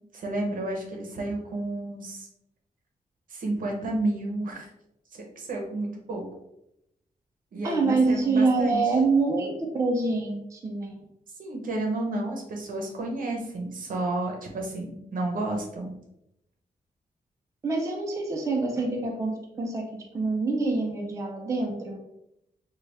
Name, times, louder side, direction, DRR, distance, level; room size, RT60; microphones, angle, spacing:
voice 1, 0.1-2.3 3.3-4.7 5.1-6.2 7.5-8.8 11.4-15.9, right 2 dB, 65° right, 1 dB, 0.7 m, -31 dB
voice 2, 7.6-9.5 9.7-11.0 17.6-22.0, right 3 dB, 20° right, 0 dB, 0.4 m, -26 dB
3.0 x 2.3 x 3.1 m, 0.81 s
wide cardioid pair, 170°, 15 cm